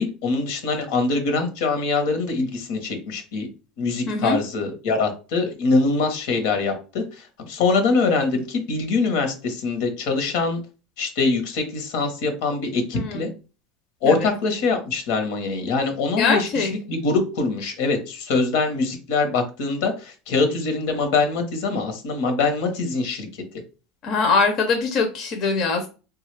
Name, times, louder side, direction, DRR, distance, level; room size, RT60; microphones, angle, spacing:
voice 1, 0.0-3.5 3.8-10.6 11.0-13.3 14.0-23.3, left 3 dB, 75° left, 6 dB, 1.0 m, -23 dB
voice 2, 4.1-4.4 12.9-13.3 14.0-14.2 16.2-16.7 24.0-25.9, left 4 dB, 45° left, 3 dB, 0.6 m, -22 dB
3.6 x 2.3 x 3.2 m, 0.33 s
supercardioid pair, 135°, 0 cm